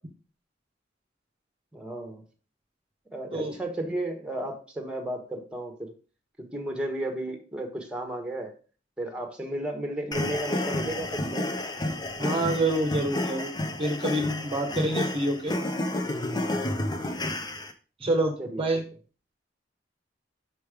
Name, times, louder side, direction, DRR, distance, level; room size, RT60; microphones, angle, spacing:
voice 1, 1.7-2.2 3.1-5.9 6.5-8.5 9.0-11.6 18.4-18.8, right 1 dB, 5° right, 4 dB, 1.2 m, -33 dB
sound 1, 10.1-17.7, left 1 dB, 25° left, 0.7 m, -30 dB
voice 2, 12.2-13.5 13.8-15.5 18.0-18.8, right 1 dB, 30° right, 3 dB, 0.9 m, -27 dB
5.8 x 5.3 x 4.9 m, 0.36 s
head